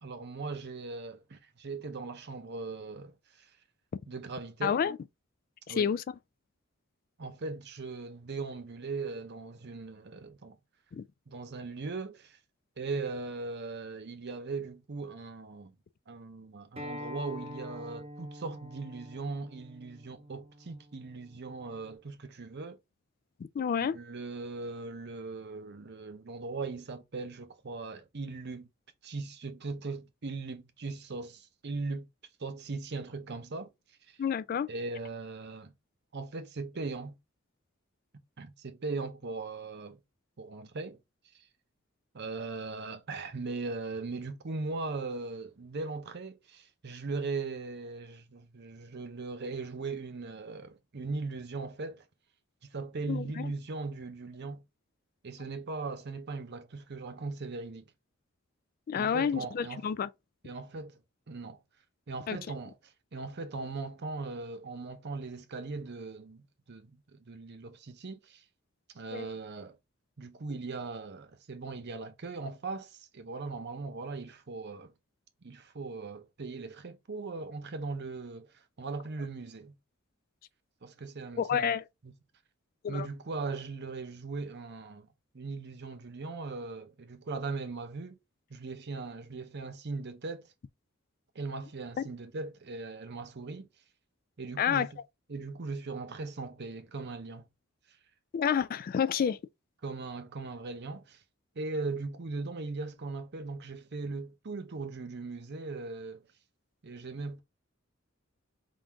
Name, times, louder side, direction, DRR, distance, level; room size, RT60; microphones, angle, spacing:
voice 1, 0.0-3.5 4.1-4.8 5.7-5.9 7.2-10.6 11.3-12.4 12.8-15.7 16.1-22.8 23.9-28.7 29.0-32.1 32.4-33.7 34.1-34.2 34.7-35.7 36.1-37.2 38.4-40.0 40.4-41.0 42.1-52.0 52.7-54.6 55.2-57.8 58.9-59.8 60.4-61.0 61.3-61.6 62.1-66.4 66.7-68.4 68.9-69.8 70.2-74.9 75.4-79.8 80.8-81.8 82.0-82.1 82.9-85.1 85.3-88.2 88.5-90.5 91.3-93.7 94.4-95.0 95.3-97.4 99.8-101.2 101.6-106.2 106.8-107.4, right 3 dB, 55° right, 0.7 m, -39 dB
voice 2, 4.6-5.0 5.7-6.0 10.9-11.0 23.6-23.9 34.2-34.7 53.1-53.5 58.9-60.1 62.3-62.4 69.1-69.3 81.4-81.8 82.8-83.1 94.6-94.9 98.3-99.4, left 7 dB, 45° left, 0.3 m, -29 dB
Acoustic guitar, 16.8-22.0, left 1 dB, 30° right, 0.9 m, -46 dB
3.8 x 2.5 x 4.5 m
head